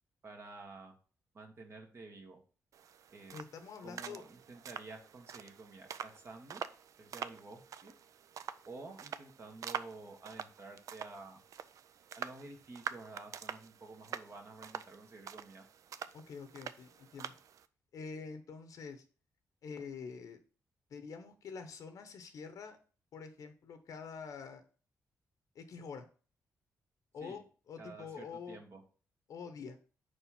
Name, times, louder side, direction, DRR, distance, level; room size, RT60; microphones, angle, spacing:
voice 1, 0.2-0.9 1.3-2.4 3.1-3.3 3.8-6.6 7.0-7.9 8.6-11.4 12.1-15.6 27.2-27.4 27.8-28.8, right 3 dB, 50° right, 3 dB, 1.6 m, -51 dB
sound 1, 2.7-17.7, right 8 dB, 70° right, 0.4 m, -46 dB
voice 2, 3.3-4.2 16.1-17.3 17.9-19.0 19.6-20.4 20.9-22.8 23.1-24.6 25.5-26.1 27.1-28.6 29.3-29.8, left 5 dB, 70° left, 8 dB, 0.8 m, -46 dB
4.9 x 4.3 x 5.7 m, 0.39 s
cardioid pair, 85°, 6 cm